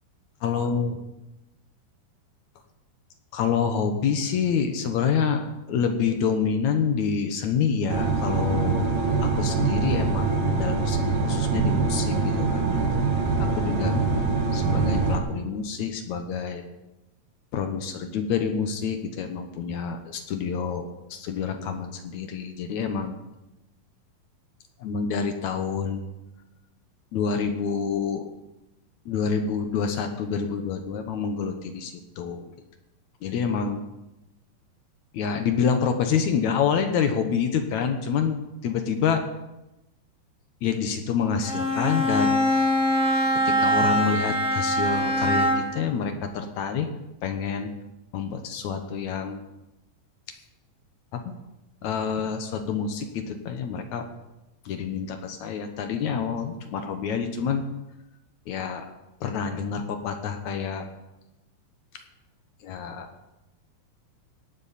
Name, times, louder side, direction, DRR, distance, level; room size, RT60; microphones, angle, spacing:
voice 1, 0.4-1.0 3.3-8.9 9.2-12.8 13.4-14.0 14.5-16.7 17.5-23.2 24.8-26.0 27.1-28.3 29.1-32.5 33.2-33.8 35.1-39.3 40.6-42.4 43.5-46.9 47.2-47.7 48.1-49.4 51.1-51.3 51.8-54.1 54.7-57.6 58.5-58.9 59.2-60.9 62.6-63.1, left 6 dB, 65° left, 6 dB, 2.0 m, -27 dB
sound 1, 7.9-15.2, right 4 dB, 70° right, 3.0 m, -24 dB
Bowed string instrument, 41.4-45.9, equal, 5° right, 0.9 m, -23 dB
17.5 x 12.0 x 4.2 m, 0.97 s
omnidirectional pair, 4.2 m